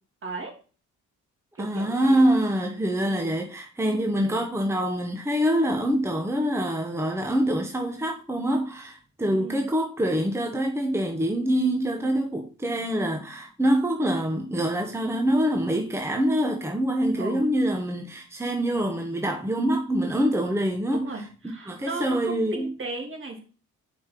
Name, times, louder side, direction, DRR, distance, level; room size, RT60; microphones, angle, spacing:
voice 1, 0.2-0.5 1.6-2.2 3.0-3.3 4.2-4.5 9.4-9.6 17.2-17.4 20.9-23.4, right 3 dB, 45° right, 2.8 m, -36 dB
voice 2, 1.6-21.1 21.7-22.7, right 1 dB, 10° right, 1.1 m, -25 dB
5.4 x 5.0 x 5.9 m
cardioid pair, 90°, 30 cm